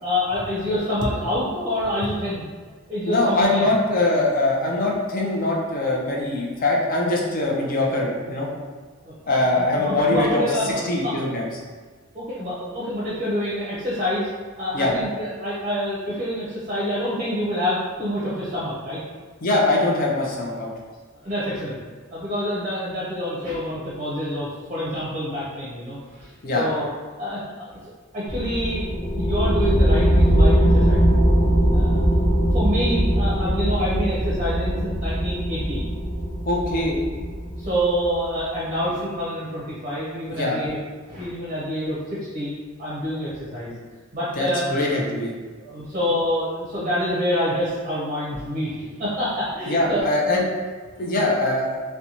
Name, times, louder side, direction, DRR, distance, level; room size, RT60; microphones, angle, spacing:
voice 1, 0.0-2.4 2.9-3.7 9.0-11.1 12.1-14.3 14.6-19.0 21.2-21.8 22.1-26.9 27.2-27.7 28.1-31.2 31.7-32.0 32.5-35.8 37.6-40.8 41.1-42.5 42.8-43.7 44.1-44.7 45.6-48.7 49.0-50.0 50.3-50.4, equal, 35° right, -9 dB, 0.6 m, -27 dB
voice 2, 3.1-8.5 9.3-11.5 14.7-14.9 19.4-20.7 26.4-26.6 36.5-37.0 40.3-40.6 44.4-45.3 49.7-50.5 51.0-51.8, left 2 dB, 45° left, -2 dB, 0.5 m, -22 dB
sound 1, 28.3-38.3, equal, 15° left, 0.8 m, -20 dB
2.6 x 2.1 x 2.9 m, 1.5 s
head